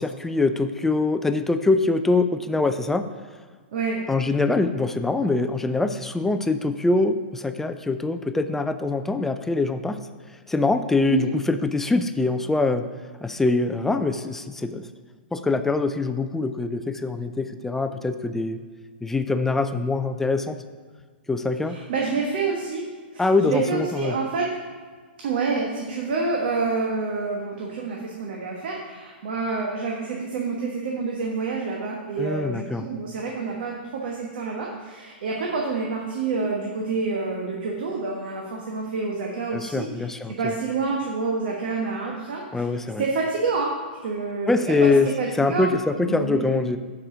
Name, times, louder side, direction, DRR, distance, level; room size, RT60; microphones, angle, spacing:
voice 1, 0.0-3.1 4.1-10.1 10.5-12.9 13.2-14.9 15.3-18.6 19.0-20.6 21.3-21.8 23.2-24.2 32.2-32.9 39.5-40.5 42.5-43.1 44.5-46.8, left 3 dB, 5° left, 9 dB, 0.4 m, -24 dB
voice 2, 3.7-4.0 11.1-11.3 21.7-22.9 23.1-24.5 25.2-42.6 43.0-43.7 44.0-45.7 46.0-46.6, right 4 dB, 65° right, -1 dB, 1.2 m, -28 dB
12.0 x 4.9 x 3.8 m, 1.5 s
hypercardioid pair, 135°, 6 cm